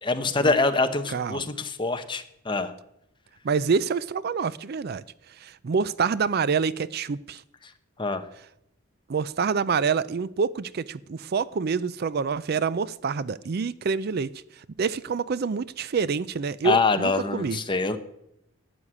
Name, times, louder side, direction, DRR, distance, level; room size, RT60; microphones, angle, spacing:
voice 1, 0.0-2.7 8.0-8.3 16.6-18.0, left 3 dB, 25° left, 1.0 m, -25 dB
voice 2, 1.1-1.4 3.4-7.4 9.1-17.6, right 5 dB, 50° right, 0.4 m, -27 dB
12.0 x 8.0 x 9.9 m
head